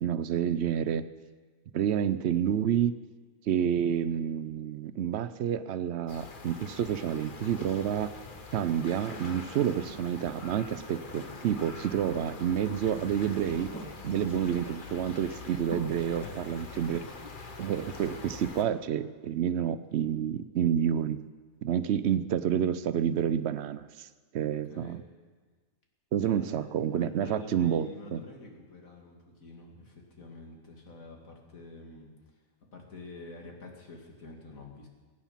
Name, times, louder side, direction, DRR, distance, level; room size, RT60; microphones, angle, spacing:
voice 1, 0.0-1.0 1.7-2.9 3.5-8.1 8.5-13.7 14.0-17.0 17.6-21.2 21.6-24.1 24.3-25.0 26.1-28.2, right 9 dB, 60° right, 14 dB, 0.8 m, -29 dB
sound 1, 6.1-18.6, left 4 dB, 40° left, 1.2 m, -44 dB
sound 2, 6.5-20.4 22.1-22.2, equal, 10° left, 2.2 m, -52 dB
voice 2, 16.2-16.8 24.7-25.0 26.2-32.1 32.7-34.9, left 3 dB, 70° left, 1 dB, 2.7 m, -47 dB
23.0 x 9.5 x 5.7 m, 1.4 s
omnidirectional pair, 1.5 m